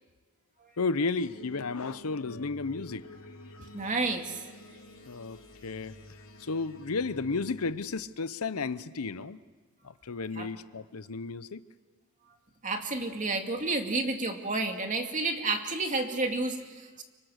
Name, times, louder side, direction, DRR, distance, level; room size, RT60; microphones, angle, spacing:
voice 1, 0.8-3.0 5.0-5.9 6.4-9.4 10.0-11.6, left 4 dB, 85° left, 15 dB, 0.8 m, -33 dB
sound 1, 1.2-8.0, left 1 dB, 70° left, 3.7 m, -49 dB
voice 2, 3.7-4.4 10.4-10.5 12.6-17.0, right 3 dB, 35° right, 4 dB, 2.5 m, -30 dB
30.0 x 25.5 x 6.6 m, 1.4 s
head